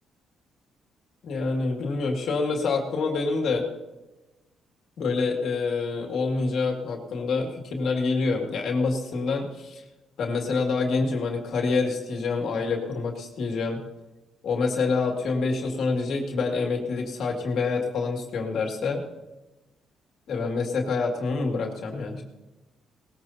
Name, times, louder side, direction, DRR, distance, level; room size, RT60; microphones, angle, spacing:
voice 1, 1.2-3.7 5.0-9.8 10.2-13.8 14.4-19.0 20.3-22.2, left 4 dB, 70° left, 1 dB, 2.2 m, -27 dB
19.0 x 14.5 x 2.8 m, 1.1 s
cardioid pair, 90°, 0 cm